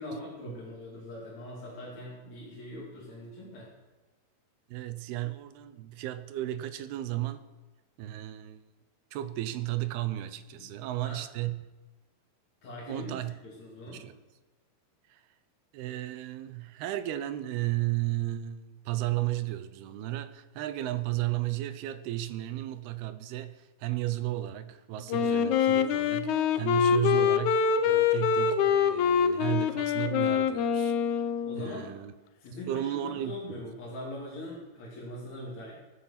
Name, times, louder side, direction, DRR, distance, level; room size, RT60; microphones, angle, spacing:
voice 1, 0.0-3.7 10.6-11.2 12.6-13.2 13.4-14.0 31.4-32.0 32.4-35.7, left 1 dB, 50° left, 4.0 m, -42 dB
voice 2, 4.7-7.4 8.0-8.6 9.1-11.6 12.9-13.3 13.9-14.1 15.1-15.2 15.7-31.0 31.6-32.1 32.7-33.6, right 14 dB, 85° right, 2.8 m, -34 dB
Wind instrument woodwind instrument, 25.1-31.8, left 7 dB, 75° left, 1.8 m, -25 dB
23.0 x 8.3 x 5.9 m
omnidirectional pair, 4.4 m